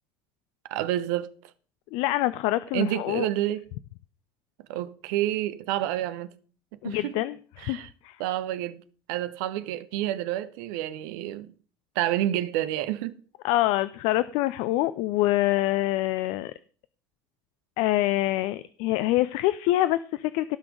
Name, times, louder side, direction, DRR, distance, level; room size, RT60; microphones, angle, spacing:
voice 1, 0.7-1.3 2.7-3.6 4.7-6.3 6.8-7.1 7.6-7.9 8.2-8.8 9.1-11.5 11.9-13.2, right 13 dB, 60° right, 1.0 m, -29 dB
voice 2, 1.9-3.3 6.8-8.2 13.4-16.5 17.8-20.6, left 16 dB, 55° left, 0.5 m, -25 dB
17.5 x 6.0 x 5.1 m
figure-of-eight pair, 65°, 12 cm